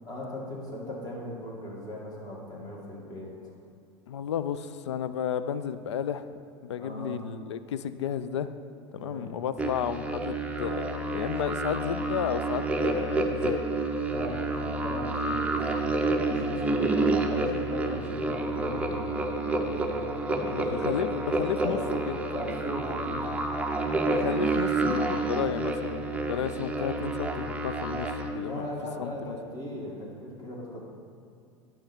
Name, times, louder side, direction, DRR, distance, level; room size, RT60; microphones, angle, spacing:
voice 1, 0.0-3.5 6.8-7.2 9.0-9.4 14.0-20.9 21.6-22.0 22.3-23.4 28.4-30.8, left 1 dB, 25° left, -2 dB, 2.1 m, -38 dB
voice 2, 4.1-6.3 6.6-8.5 8.9-13.6 20.4-21.8 22.1-22.2 24.0-28.7 29.0-29.3, left 8 dB, 85° left, 13 dB, 0.4 m, -32 dB
sound 1, 9.6-28.3, right 2 dB, 10° right, 0.6 m, -29 dB
10.5 x 5.1 x 4.4 m, 2.4 s
hypercardioid pair, 95°, 14 cm